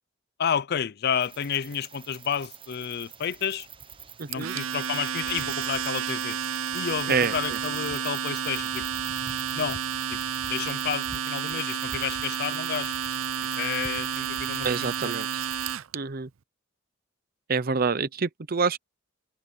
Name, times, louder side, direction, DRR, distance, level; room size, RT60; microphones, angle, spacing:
voice 1, 0.4-3.7 4.3-6.4 6.7-8.9 9.5-9.8 10.1-10.2 10.5-13.1 13.4-15.2, left 7 dB, 55° left, 0.5 m, -31 dB
sound 1, 1.2-15.7, right 7 dB, 25° right, 1.1 m, -44 dB
voice 2, 4.2-4.5 7.1-7.6 14.6-15.3 15.9-16.3 17.5-18.8, right 5 dB, 50° right, 0.7 m, -27 dB
Domestic sounds home sounds, 4.3-16.0, right 8 dB, 90° right, 0.6 m, -31 dB
open air
head